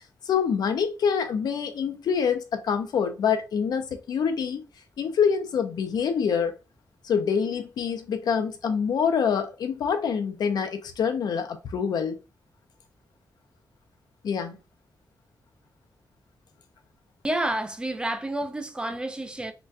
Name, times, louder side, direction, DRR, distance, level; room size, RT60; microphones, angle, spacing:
voice 1, 0.2-4.6 5.0-6.5 7.0-12.2 14.2-14.6, left 7 dB, 70° left, 0.5 m, -26 dB
voice 2, 17.2-19.5, right 1 dB, 15° right, 0.3 m, -29 dB
3.9 x 2.2 x 2.4 m
wide cardioid pair, 175°, 7 cm